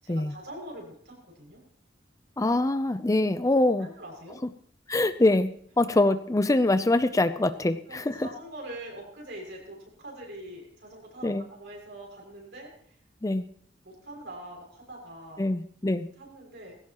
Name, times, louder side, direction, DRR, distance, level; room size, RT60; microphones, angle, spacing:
voice 1, 0.0-1.6 3.8-4.4 7.9-12.7 13.8-15.4 16.2-16.8, right 1 dB, 70° right, 0 dB, 6.4 m, -43 dB
voice 2, 2.4-3.9 4.9-8.3 11.2-11.5 13.2-13.4 15.4-16.1, left 2 dB, 20° left, 12 dB, 0.5 m, -24 dB
20.0 x 16.5 x 3.0 m, 0.62 s
head